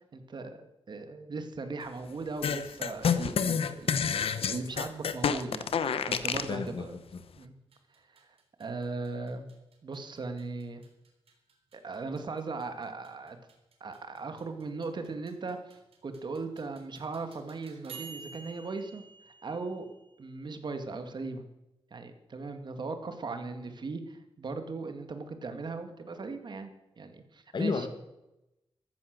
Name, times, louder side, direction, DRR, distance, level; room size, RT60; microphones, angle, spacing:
voice 1, 0.1-4.1 4.5-5.7 6.1-7.0 7.4-7.5 8.0-8.3 8.6-9.5 9.8-10.8 11.7-13.4 13.8-19.0 19.4-19.9 20.2-21.4 21.9-26.7 27.0-27.9, right 3 dB, 50° right, 7 dB, 2.0 m, -38 dB
sound 1, 2.4-6.5, left 7 dB, 75° left, 1.0 m, -29 dB
voice 2, 6.5-7.2 27.5-27.9, left 4 dB, 55° left, 8 dB, 1.9 m, -32 dB
sound 2, 7.6-20.3, right 5 dB, 80° right, 4.0 m, -53 dB
14.0 x 14.0 x 6.7 m, 0.93 s
wide cardioid pair, 125°, 10 cm